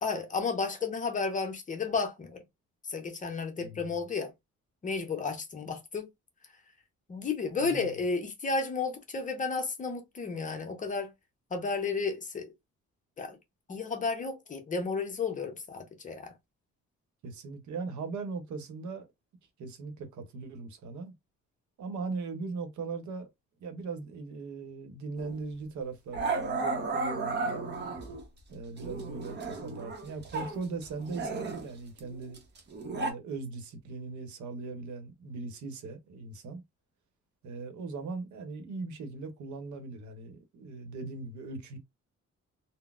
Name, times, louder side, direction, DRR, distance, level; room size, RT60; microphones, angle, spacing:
voice 1, 0.0-2.4 2.9-4.3 4.8-6.1 7.1-11.1 11.5-12.5 13.2-13.4 13.7-16.3, left 4 dB, 25° left, 0.6 m, -32 dB
voice 2, 3.6-4.0 7.6-7.9 17.2-19.1 19.6-21.1 21.8-23.3 23.6-27.9 28.5-32.4 32.9-36.6 37.4-41.8, right 4 dB, 80° right, 0.8 m, -39 dB
Growling, 25.2-25.4 26.1-28.2 28.8-30.6 30.8-33.1, right 3 dB, 40° right, 0.8 m, -34 dB
3.9 x 2.0 x 2.3 m
cardioid pair, 170°, 29 cm